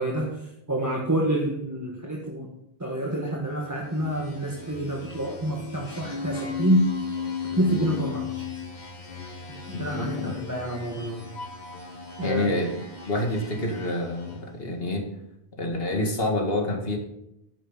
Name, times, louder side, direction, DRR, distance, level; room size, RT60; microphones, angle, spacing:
voice 1, 0.0-2.5 2.8-6.8 7.5-8.3 9.5-11.2 12.2-12.5, right 1 dB, 15° right, -2 dB, 1.6 m, -27 dB
sound 1, 3.7-14.6, left 6 dB, 45° left, 1.7 m, -36 dB
voice 2, 9.7-10.4 12.2-12.8 13.1-15.1 15.6-17.0, left 1 dB, 65° left, 2 dB, 2.1 m, -27 dB
11.5 x 9.4 x 4.1 m, 0.81 s
omnidirectional pair, 1.1 m